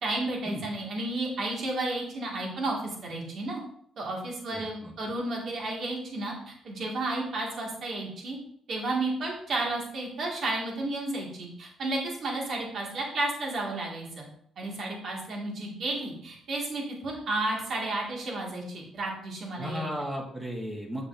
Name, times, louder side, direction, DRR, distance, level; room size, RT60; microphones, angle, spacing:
voice 1, 0.0-2.8 3.0-3.6 4.0-8.4 8.7-14.2 14.6-20.1, right 2 dB, 60° right, -1 dB, 2.1 m, -32 dB
voice 2, 4.5-4.9 19.6-21.1, equal, 20° right, 0 dB, 1.4 m, -35 dB
7.6 x 6.7 x 2.7 m, 0.67 s
cardioid pair, 90°, 0 cm